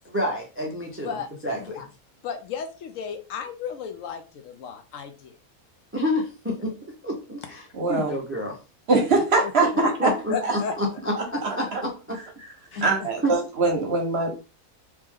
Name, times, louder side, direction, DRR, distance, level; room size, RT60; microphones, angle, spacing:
voice 1, 0.1-1.2 1.4-1.6 5.9-6.7 7.0-8.6 9.8-12.2 12.7-12.9 13.2-13.3, left 1 dB, 15° right, 0 dB, 0.4 m, -28 dB
voice 2, 1.6-1.9 2.2-5.3 9.4-9.5 10.0-10.8 12.7-13.1, left 6 dB, 70° left, 7 dB, 0.9 m, -34 dB
voice 3, 7.7-8.1 8.9-10.1 10.4-10.5 11.2-11.3 11.7-11.8 12.8-14.3, right 3 dB, 50° right, 3 dB, 0.9 m, -22 dB
3.0 x 2.9 x 3.5 m, 0.33 s
omnidirectional pair, 1.5 m